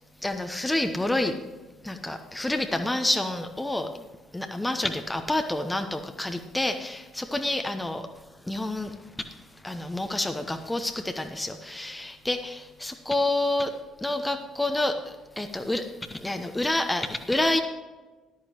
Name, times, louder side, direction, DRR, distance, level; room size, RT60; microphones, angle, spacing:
voice 1, 0.2-1.3 1.8-3.9 4.3-8.1 8.5-8.9 9.6-13.7 14.0-15.0 15.4-15.8 16.1-17.6, left 1 dB, 10° left, 6 dB, 0.9 m, -28 dB
13.5 x 11.5 x 3.0 m, 1.2 s
figure-of-eight pair, 50°, 0 cm